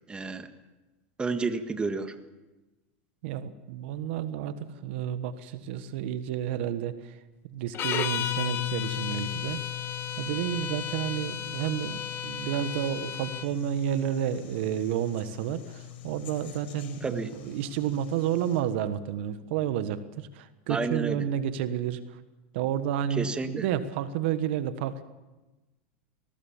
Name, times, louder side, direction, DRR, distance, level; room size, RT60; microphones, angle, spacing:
voice 1, 0.1-0.5 1.2-2.2 17.0-17.3 20.7-21.3 23.1-23.7, right 4 dB, 15° right, 8 dB, 1.7 m, -30 dB
voice 2, 3.2-7.2 7.5-9.6 10.2-22.2 22.5-25.0, right 10 dB, 70° right, 12 dB, 1.4 m, -31 dB
sound 1, 7.7-13.5, left 9 dB, 40° left, 1.4 m, -34 dB
sound 2, 8.1-18.6, left 14 dB, 75° left, 4.3 m, -40 dB
22.0 x 18.5 x 7.3 m, 1.1 s
supercardioid pair, 120°, 6 cm